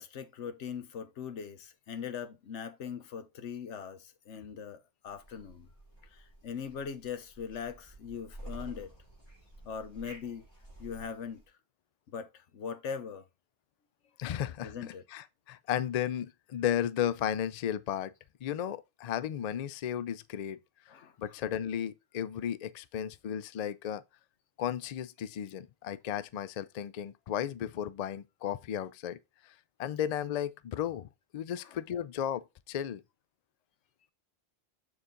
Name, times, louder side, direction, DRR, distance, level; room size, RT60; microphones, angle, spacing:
voice 1, 0.0-5.7 6.1-8.9 9.6-10.4 10.8-11.4 12.1-13.3 14.6-15.0 20.9-21.2 31.6-31.8, left 7 dB, 85° left, 1.1 m, -41 dB
sound 1, 5.1-11.5, right 1 dB, 20° left, 4.4 m, -51 dB
voice 2, 14.2-14.7 15.1-18.1 18.4-20.6 21.2-24.0 24.6-29.2 29.4-29.5 29.8-33.0, left 10 dB, 70° left, 0.3 m, -34 dB
6.9 x 4.7 x 3.7 m
omnidirectional pair, 1.2 m